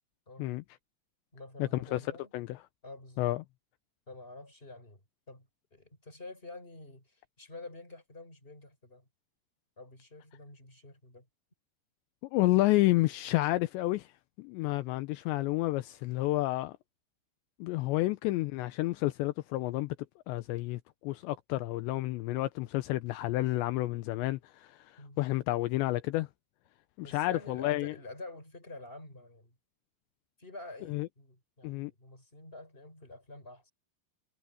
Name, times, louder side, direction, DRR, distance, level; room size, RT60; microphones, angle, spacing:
voice 1, 0.3-0.6 1.3-2.3 2.8-3.3 4.1-5.0 5.3-9.1 9.8-11.3 25.0-25.2 27.0-29.6 30.4-33.7, left 2 dB, 10° left, 6.2 m, -48 dB
voice 2, 1.6-2.0 2.3-2.6 3.2-3.4 12.3-14.1 14.4-16.8 17.6-20.0 20.3-26.3 27.0-27.9 30.9-31.1 31.6-31.9, left 18 dB, 80° left, 2.9 m, -30 dB
omnidirectional pair, 5.2 m